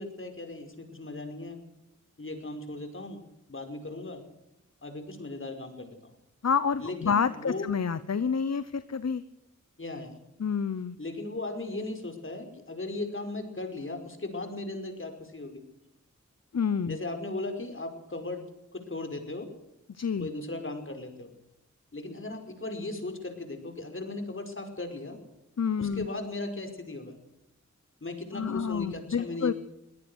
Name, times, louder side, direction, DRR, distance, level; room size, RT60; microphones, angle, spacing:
voice 1, 0.0-1.6 2.2-3.2 3.5-4.2 4.8-6.2 6.8-7.7 9.8-10.2 11.0-15.6 16.9-19.5 20.2-21.3 21.9-25.2 25.8-27.2 28.0-29.5, left 2 dB, 45° left, 6 dB, 5.3 m, -37 dB
voice 2, 6.4-9.2 10.4-11.0 16.5-17.0 19.9-20.3 25.6-26.1 28.3-29.5, left 6 dB, 60° left, 14 dB, 1.0 m, -28 dB
23.0 x 17.5 x 6.4 m, 0.84 s
wide cardioid pair, 65°, 30 cm